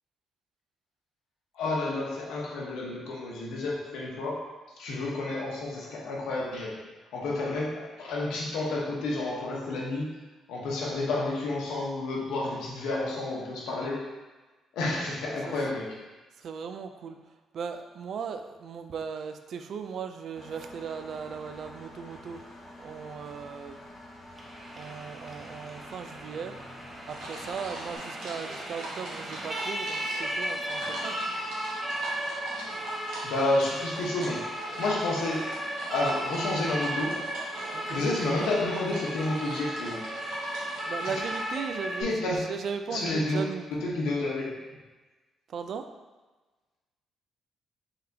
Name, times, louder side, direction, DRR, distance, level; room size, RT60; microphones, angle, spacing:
voice 1, 1.5-4.5 4.8-6.8 7.1-10.1 10.5-14.0 14.7-15.9 33.2-34.5 34.8-35.5 35.9-37.1 37.9-40.0 42.0-42.4 42.9-44.5, left 2 dB, 90° left, -3 dB, 0.9 m, -30 dB
voice 2, 16.4-23.8 24.8-26.6 27.1-31.2 37.7-38.0 40.5-43.6 45.5-45.9, right 6 dB, 65° right, 7 dB, 0.3 m, -38 dB
Engine, 20.4-28.0, left 1 dB, 45° left, 1.0 m, -48 dB
Siren, 24.3-42.0, right 1 dB, 25° right, 0.8 m, -36 dB
sound 1, 27.1-41.5, right 1 dB, 90° right, 1.0 m, -42 dB
4.4 x 3.5 x 2.7 m, 1.2 s
cardioid pair, 90°, 0 cm